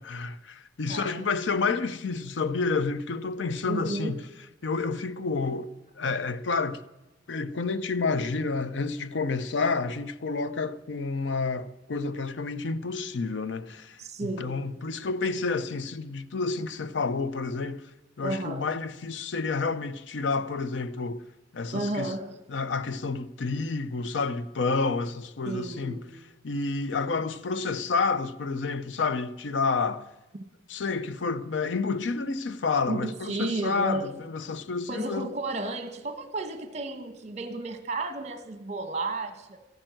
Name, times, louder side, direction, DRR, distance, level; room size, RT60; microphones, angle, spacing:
voice 1, 0.0-4.2 4.6-6.8 7.3-17.8 18.2-21.2 21.5-22.1 22.5-26.0 26.4-30.0 30.7-35.3, left 4 dB, 70° left, 0.6 m, -29 dB
voice 2, 0.9-1.3 3.6-4.2 14.0-14.6 18.2-18.7 21.7-22.4 25.4-26.0 30.3-30.4 32.9-34.1 34.9-39.6, right 2 dB, 40° right, 1.2 m, -32 dB
14.5 x 8.9 x 7.7 m
head